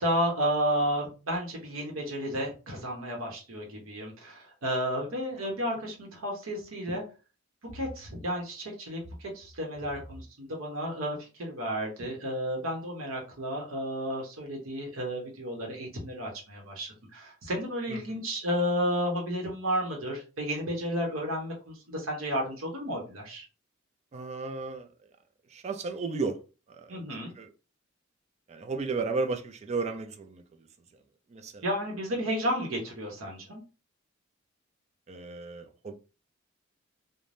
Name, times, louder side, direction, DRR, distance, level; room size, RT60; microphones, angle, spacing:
voice 1, 0.0-7.0 7.7-23.4 26.9-27.3 31.6-33.6, equal, 90° right, 0.9 m, -32 dB
voice 2, 17.9-18.2 24.1-24.9 25.5-26.4 26.7-27.0 27.4-27.5 28.5-30.7 31.3-31.7 35.1-35.9, right 4 dB, 35° right, 0.3 m, -34 dB
3.2 x 2.1 x 2.6 m
head